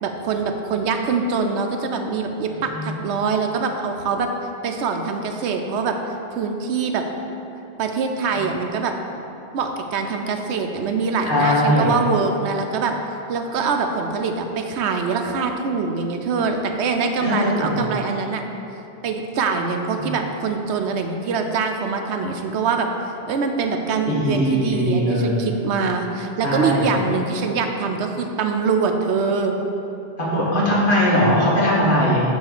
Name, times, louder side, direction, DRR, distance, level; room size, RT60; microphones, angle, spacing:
voice 1, 0.0-4.3 4.6-6.0 6.3-7.0 7.8-8.9 9.5-12.9 13.3-18.4 19.0-29.6, right 5 dB, 80° right, 5 dB, 0.9 m, -24 dB
voice 2, 11.3-11.9 17.2-17.8 20.0-20.1 24.1-25.5 26.4-27.0 30.2-32.2, equal, 50° left, -6 dB, 1.7 m, -20 dB
8.9 x 3.2 x 6.6 m, 2.9 s
omnidirectional pair, 1.2 m